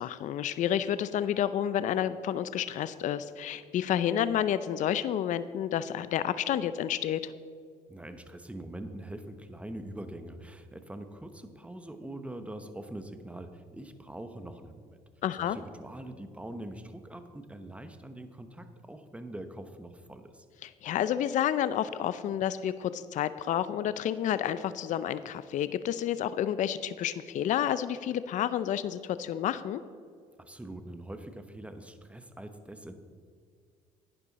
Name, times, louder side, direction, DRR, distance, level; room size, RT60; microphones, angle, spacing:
voice 1, 0.0-7.3 15.2-15.6 20.6-29.8, left 10 dB, 55° left, 14 dB, 0.5 m, -30 dB
voice 2, 7.9-15.0 15.3-20.4 30.4-32.9, right 1 dB, 10° right, 9 dB, 1.0 m, -43 dB
11.0 x 10.0 x 4.1 m, 2.2 s
supercardioid pair, 85°, 15 cm